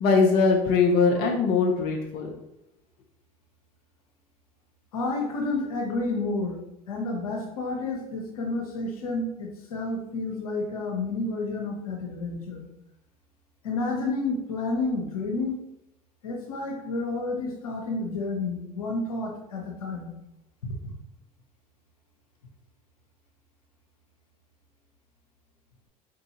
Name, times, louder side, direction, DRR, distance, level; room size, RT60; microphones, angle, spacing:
voice 1, 0.0-2.3, left 4 dB, 55° left, 1 dB, 0.8 m, -21 dB
voice 2, 4.9-6.6 6.9-12.6 13.6-15.6 16.2-20.1 20.8-20.9, left 3 dB, 85° left, 0 dB, 0.9 m, -30 dB
4.6 x 2.6 x 4.3 m, 0.84 s
hypercardioid pair, 70°, 18 cm